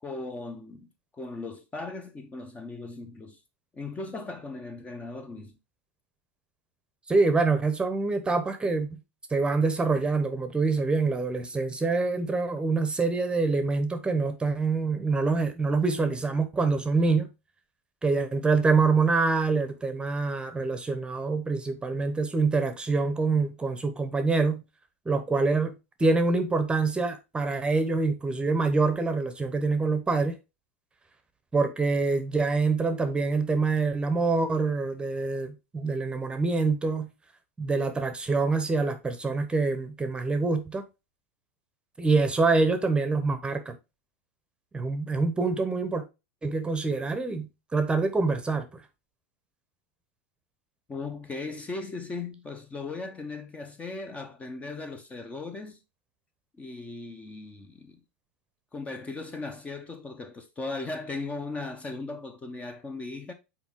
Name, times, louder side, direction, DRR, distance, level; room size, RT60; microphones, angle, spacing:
voice 1, 0.0-0.9 1.1-3.4 3.7-5.6 50.9-55.8 56.6-58.0 58.7-63.3, left 3 dB, 20° left, 0.9 m, -37 dB
voice 2, 7.1-9.0 9.3-17.3 18.0-24.6 25.0-25.7 26.0-30.4 31.5-37.1 37.6-40.8 42.0-43.8 44.7-46.0 46.4-48.8, right 3 dB, 15° right, 1.0 m, -25 dB
6.1 x 4.4 x 3.7 m
hypercardioid pair, 110°, 7 cm